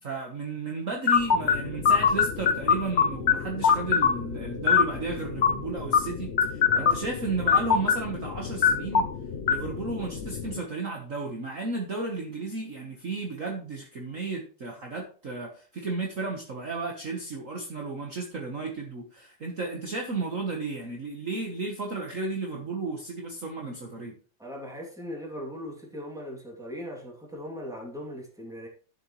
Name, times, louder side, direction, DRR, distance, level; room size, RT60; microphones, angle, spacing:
voice 1, 0.0-9.1 9.5-24.1, right 3 dB, 45° right, 1 dB, 1.6 m, -33 dB
sound 1, 1.1-10.6, left 7 dB, 55° left, 0.7 m, -25 dB
voice 2, 24.4-28.7, equal, ahead, -1 dB, 2.6 m, -39 dB
12.0 x 7.1 x 3.2 m, 0.41 s
omnidirectional pair, 2.1 m